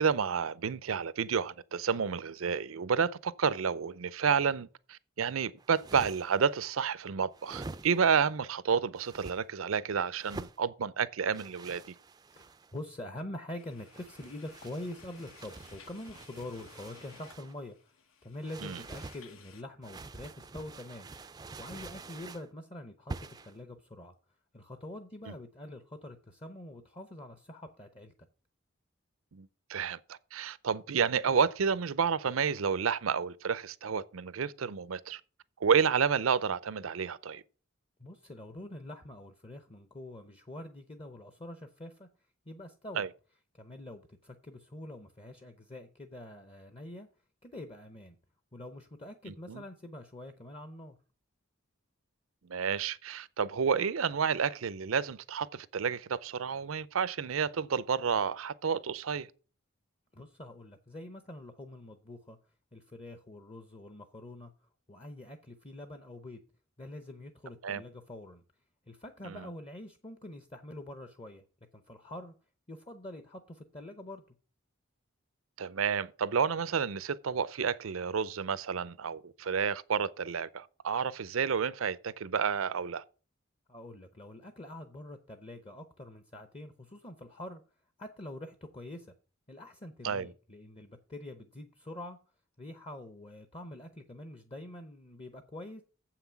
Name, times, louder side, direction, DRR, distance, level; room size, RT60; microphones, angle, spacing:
voice 1, 0.0-11.9 18.6-18.8 25.3-25.4 29.3-35.2 35.6-37.4 42.9-43.1 49.3-49.6 52.5-59.3 67.6-67.8 69.2-69.5 75.6-83.0 90.0-90.3, right 6 dB, 85° right, 0.5 m, -30 dB
sound 1, 5.6-6.5 7.3-8.2 9.0-9.4 10.1-10.6 11.3-12.8 13.8-17.6 18.4-19.2 19.8-22.5 23.1-23.6, right 3 dB, 20° right, 0.4 m, -46 dB
voice 2, 12.3-17.9 18.2-21.1 21.6-24.1 24.5-28.1 38.0-42.1 42.5-43.0 43.6-47.1 47.4-48.2 48.5-51.0 60.1-62.4 62.7-64.5 64.9-66.4 66.8-68.4 68.9-71.4 71.7-72.3 72.7-74.2 83.7-87.6 88.0-89.1 89.5-92.2 92.6-95.8, left 1 dB, 30° left, 0.7 m, -45 dB
sound 2, 13.6-19.6, left 6 dB, 75° left, 1.1 m, -57 dB
7.6 x 5.9 x 7.1 m
head